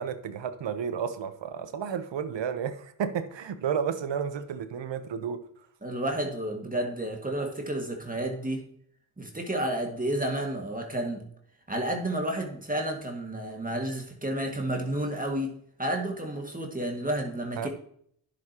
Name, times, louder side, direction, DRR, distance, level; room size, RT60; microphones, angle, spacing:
voice 1, 0.0-5.4 17.6-17.7, right 7 dB, 60° right, 11 dB, 1.1 m, -32 dB
voice 2, 5.8-8.7 9.2-11.2 11.7-17.7, right 1 dB, 15° right, 2 dB, 2.0 m, -31 dB
10.5 x 7.7 x 3.0 m, 0.66 s
supercardioid pair, 50°, 48 cm